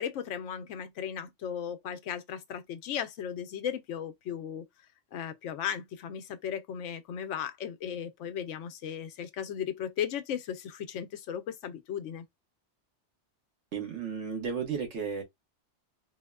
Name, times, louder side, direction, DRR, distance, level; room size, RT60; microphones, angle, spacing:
voice 1, 0.0-4.6 5.1-12.3, left 9 dB, 90° left, 0.9 m, -36 dB
voice 2, 13.7-15.2, right 6 dB, 75° right, 1.4 m, -33 dB
3.5 x 2.1 x 2.2 m
omnidirectional pair, 1.2 m